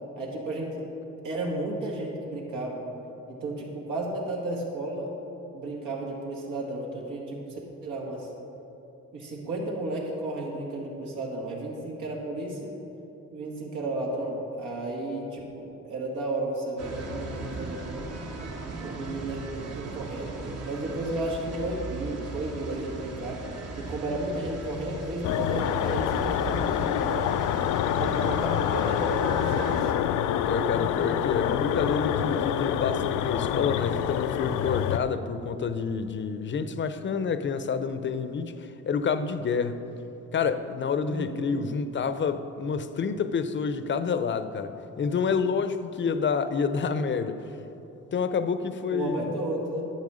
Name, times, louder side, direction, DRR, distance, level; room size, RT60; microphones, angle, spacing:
voice 1, 0.2-0.8 1.2-2.8 3.3-5.1 5.5-8.3 9.1-12.7 13.3-18.1 18.8-20.4 20.6-23.4 23.7-27.4 28.0-29.9 41.0-41.5 48.9-49.8, right 1 dB, 85° right, 2.1 m, -33 dB
sound 1, 16.8-29.9, right 3 dB, 55° right, 1.4 m, -38 dB
sound 2, 25.2-35.0, left 10 dB, 85° left, 0.5 m, -27 dB
voice 2, 30.5-38.5 38.9-39.8 40.3-47.4 48.1-49.3, left 5 dB, 40° left, 0.6 m, -28 dB
10.5 x 8.1 x 5.0 m
cardioid pair, 90°, 30 cm